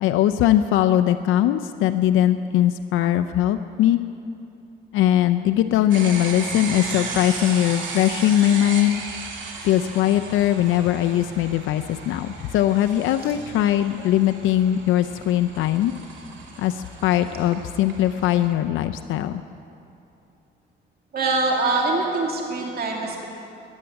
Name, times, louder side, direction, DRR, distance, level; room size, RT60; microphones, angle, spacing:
voice 1, 0.0-4.0 4.9-9.0 9.6-15.9 16.6-19.4, left 12 dB, 90° left, 8 dB, 0.5 m, -20 dB
sound 1, 5.9-18.5, right 4 dB, 75° right, 2.5 m, -36 dB
voice 2, 21.1-23.3, right 3 dB, 50° right, -1 dB, 2.5 m, -24 dB
15.0 x 9.8 x 9.2 m, 2.7 s
cardioid pair, 90°, 20 cm